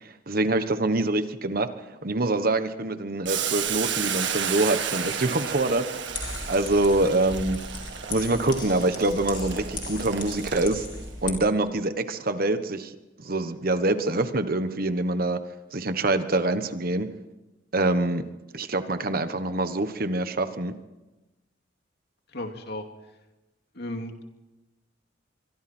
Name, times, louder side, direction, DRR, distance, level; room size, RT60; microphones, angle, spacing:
voice 1, 0.0-1.7 2.0-5.9 6.5-7.6 8.1-10.9 11.2-12.9 13.2-15.4 15.7-17.1 17.7-18.2 18.5-20.7, right 2 dB, 50° right, 10 dB, 1.3 m, -25 dB
Boiling, 3.3-11.0, right 8 dB, 65° right, 2.0 m, -32 dB
sound 1, 6.1-11.3, left 2 dB, 25° left, 3.8 m, -37 dB
voice 2, 22.3-22.8 23.7-24.2, left 1 dB, 55° left, 4 dB, 2.6 m, -34 dB
25.5 x 23.0 x 4.5 m, 1.0 s
head